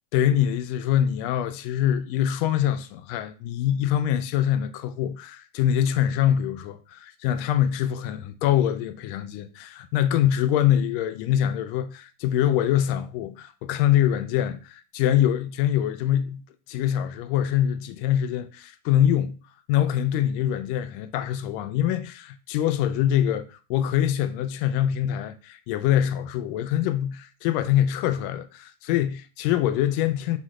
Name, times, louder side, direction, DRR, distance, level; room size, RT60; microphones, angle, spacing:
voice 1, 0.1-16.4 16.7-19.4 19.7-30.4, left 11 dB, 45° left, 0.5 m, -24 dB
5.9 x 3.0 x 2.5 m
supercardioid pair, 135°, 38 cm